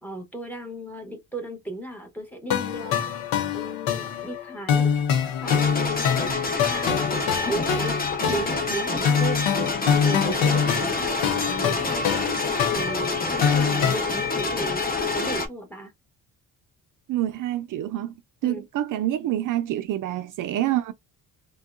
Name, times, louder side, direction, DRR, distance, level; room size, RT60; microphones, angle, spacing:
voice 1, 0.0-3.2 3.5-4.9 5.4-6.2 6.6-8.0 8.3-9.5 10.0-12.2 12.7-15.9 18.4-18.6, right 1 dB, 5° left, 1.1 m, -35 dB
sound 1, 2.5-14.0, left 7 dB, 80° left, 0.7 m, -25 dB
sound 2, 5.4-15.5, left 3 dB, 25° left, 0.7 m, -27 dB
voice 2, 17.1-18.1 18.4-20.9, right 13 dB, 60° right, 0.5 m, -27 dB
3.5 x 2.2 x 2.4 m
cardioid pair, 110°, 36 cm